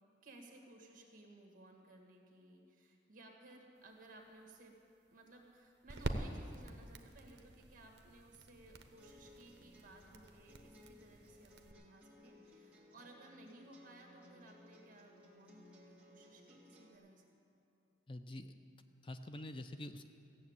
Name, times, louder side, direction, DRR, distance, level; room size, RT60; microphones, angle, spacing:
voice 1, 0.2-4.8 5.1-17.4, right 1 dB, 45° right, 1 dB, 1.8 m, -59 dB
sound 1, 3.8-11.7, right 2 dB, 60° right, 0.8 m, -47 dB
sound 2, 9.0-17.0, left 1 dB, 5° right, 1.9 m, -62 dB
voice 2, 18.1-18.5 19.0-20.1, left 1 dB, 25° left, 8 dB, 0.5 m, -46 dB
15.0 x 7.2 x 8.8 m, 2.7 s
head